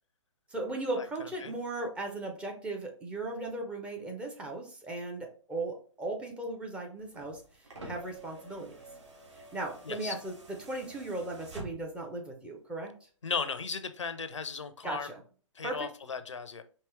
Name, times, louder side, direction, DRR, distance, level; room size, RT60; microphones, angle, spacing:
voice 1, 0.5-7.4 7.8-8.7 9.3-12.9 14.8-15.2 15.6-15.9, right 2 dB, 5° right, 1 dB, 0.5 m, -37 dB
sound 1, 7.0-12.1 13.3-13.4, right 2 dB, 65° right, 1.6 m, -48 dB
voice 2, 13.2-15.1 15.6-16.6, left 5 dB, 70° left, 11 dB, 0.5 m, -36 dB
4.6 x 2.9 x 3.0 m, 0.41 s
figure-of-eight pair, 125°, 16 cm